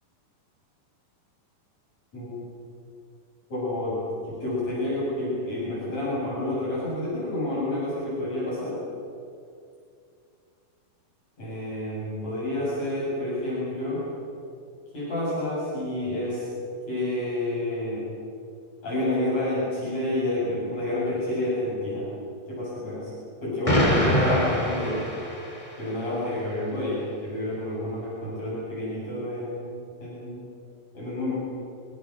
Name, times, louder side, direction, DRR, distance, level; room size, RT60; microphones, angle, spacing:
voice 1, 3.5-8.8 11.4-14.1 14.9-16.5 16.9-18.1 18.8-22.1 22.5-23.1 23.4-25.1 25.8-30.4 30.9-31.3, left 1 dB, 50° left, -8 dB, 9.3 m, -29 dB
Explosion, 23.7-25.8, equal, 10° left, 3.3 m, -24 dB
26.5 x 25.5 x 6.7 m, 2.4 s
omnidirectional pair, 4.1 m